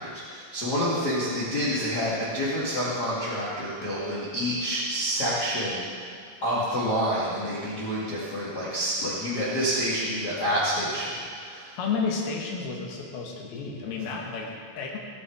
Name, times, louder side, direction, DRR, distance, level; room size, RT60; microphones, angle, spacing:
voice 1, 0.0-6.1 6.4-11.8, equal, 85° left, -9 dB, 0.9 m, -28 dB
voice 2, 11.8-15.0, left 5 dB, 65° left, -1 dB, 2.6 m, -31 dB
19.5 x 6.8 x 4.7 m, 2.2 s
omnidirectional pair, 6.0 m